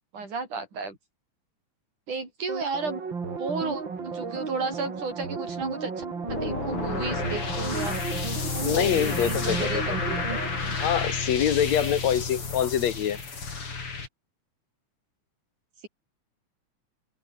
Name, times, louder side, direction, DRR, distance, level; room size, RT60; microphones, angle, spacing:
voice 1, 0.1-1.0 2.1-3.0 3.4-8.0 8.7-10.6, right 4 dB, 90° right, 7.9 m, -33 dB
sound 1, 2.5-11.9 12.2-12.3, right 5 dB, 40° right, 3.6 m, -34 dB
sound 2, 6.3-14.1, left 4 dB, 45° left, 4.7 m, -31 dB
voice 2, 8.5-9.8 10.8-13.2, left 10 dB, 65° left, 2.7 m, -25 dB
open air
omnidirectional pair, 3.4 m